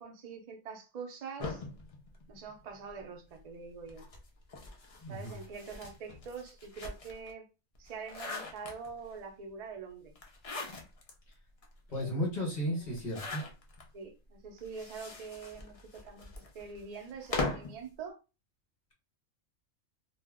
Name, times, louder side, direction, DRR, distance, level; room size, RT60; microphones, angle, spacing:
voice 1, 0.0-1.6 2.3-4.0 5.1-7.5 7.8-10.1 11.9-13.0 13.9-18.2, right 5 dB, 50° right, 0.4 m, -45 dB
sound 1, 1.4-3.0 3.9-7.3 7.7-9.2 10.2-11.1 11.6-11.7 11.9-12.0 12.9-13.9 14.6-17.8, left 3 dB, 60° left, 0.3 m, -41 dB
voice 2, 5.0-5.4 11.9-13.5, equal, 35° left, 1.0 m, -34 dB
2.4 x 2.0 x 3.4 m
omnidirectional pair, 1.4 m